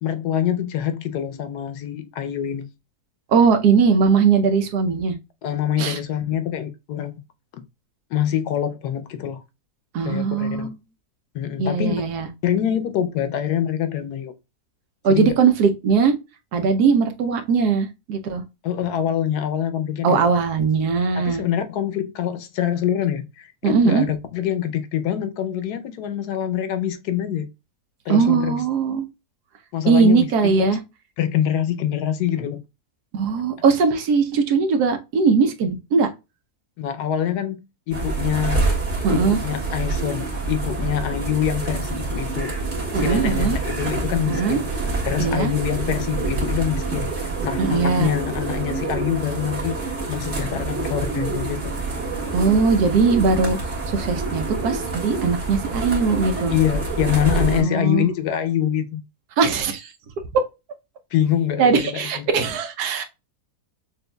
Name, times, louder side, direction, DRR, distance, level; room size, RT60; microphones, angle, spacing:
voice 1, 0.0-2.7 5.4-7.2 8.1-9.4 10.0-10.7 11.3-11.9 12.4-14.3 15.1-15.3 18.6-20.3 21.1-27.5 28.1-28.6 29.7-30.8 31.2-32.6 36.8-37.6 37.9-38.6 39.1-42.5 43.0-44.7 45.0-51.7 56.5-59.0 61.1-62.3, left 10 dB, 85° left, 1.2 m, -25 dB
voice 2, 3.3-5.2 5.8-6.0 9.9-10.7 11.6-12.3 15.0-16.1 16.5-18.4 20.0-21.4 23.6-24.0 28.1-29.1 29.9-30.8 33.1-36.1 39.0-39.4 42.9-43.6 44.3-44.6 45.2-45.5 47.6-48.1 52.3-56.6 57.6-58.1 59.4-59.9 61.6-63.0, right 5 dB, 85° right, 1.3 m, -20 dB
sound 1, 37.9-57.6, right 3 dB, 45° right, 1.9 m, -27 dB
6.2 x 2.5 x 2.2 m
omnidirectional pair, 1.7 m